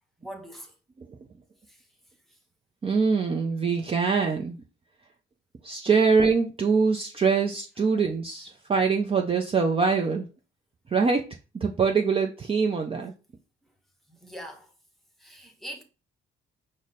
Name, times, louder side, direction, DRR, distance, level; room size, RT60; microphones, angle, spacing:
voice 1, 0.2-0.8 1.7-2.0 2.3-2.4 13.7-13.8 14.1-14.7 15.2-15.8, equal, ahead, 1.0 m, -43 dB
voice 2, 2.8-4.6 5.6-10.3 10.9-11.3 11.5-13.1, right 5 dB, 30° right, 0.5 m, -24 dB
4.9 x 2.1 x 4.0 m
cardioid pair, 90°, 20 cm